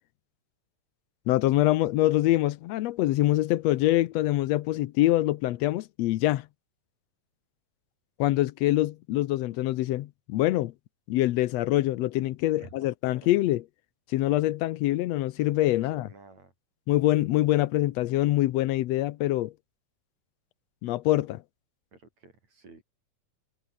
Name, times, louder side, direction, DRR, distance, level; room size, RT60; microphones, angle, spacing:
voice 1, 1.3-6.5 8.2-10.7 11.1-13.6 14.1-16.1 16.9-19.5 20.8-21.4, left 15 dB, 75° left, 1.7 m, -25 dB
voice 2, 12.6-13.3 15.7-16.5 21.9-22.8, right 3 dB, 65° right, 8.2 m, -52 dB
omnidirectional pair, 3.4 m